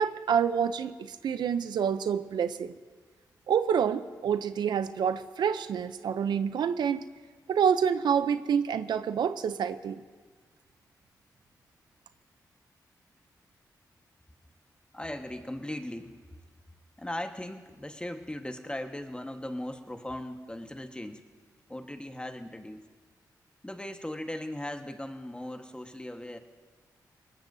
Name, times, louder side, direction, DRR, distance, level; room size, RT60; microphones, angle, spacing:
voice 1, 0.0-2.8 3.5-7.0 7.5-10.0, right 7 dB, 85° right, 12 dB, 0.5 m, -27 dB
voice 2, 14.9-16.1 17.0-21.2 21.7-22.9 23.6-26.4, left 1 dB, 15° left, 6 dB, 1.3 m, -38 dB
21.5 x 19.0 x 2.7 m, 1.5 s
cardioid pair, 55°, 7 cm